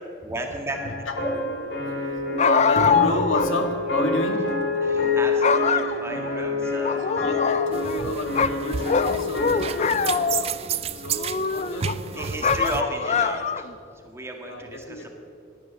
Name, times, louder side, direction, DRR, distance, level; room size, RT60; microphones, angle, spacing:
voice 1, 0.2-0.8 1.2-1.3 4.8-7.1 12.1-15.1, right 1 dB, 15° right, 2 dB, 1.7 m, -34 dB
sound 1, 0.7-10.2, left 3 dB, 65° left, 3.3 m, -27 dB
voice 2, 1.4-4.6 7.0-10.5 10.9-12.8 13.1-13.2 14.4-15.1, left 1 dB, 85° left, 5 dB, 1.8 m, -31 dB
sound 2, 2.4-3.5 3.9-4.0 4.8-5.1 5.4-6.4 6.8-8.0 8.3-10.6 11.1-11.9 12.4-13.7, left 5 dB, 35° left, 0.5 m, -24 dB
sound 3, 7.7-12.8, right 7 dB, 30° right, 0.4 m, -32 dB
17.5 x 11.0 x 7.1 m, 2.5 s
head